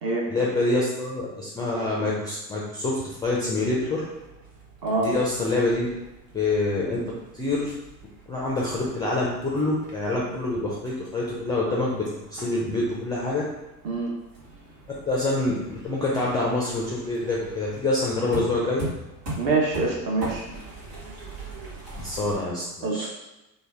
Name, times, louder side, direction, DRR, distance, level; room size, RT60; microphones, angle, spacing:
voice 1, 0.3-4.0 5.0-5.9 6.3-7.0 7.3-7.7 8.3-12.0 12.3-13.4 15.1-18.8 22.0-23.1, left 2 dB, 10° left, -5 dB, 0.3 m, -26 dB
sound 1, 3.1-22.4, right 1 dB, 75° right, 1.1 m, -42 dB
voice 2, 4.8-5.1 13.8-14.1 19.4-20.4 22.8-23.1, right 3 dB, 45° right, -1 dB, 1.0 m, -25 dB
3.1 x 2.1 x 3.5 m, 0.97 s
figure-of-eight pair, 65°, 50 cm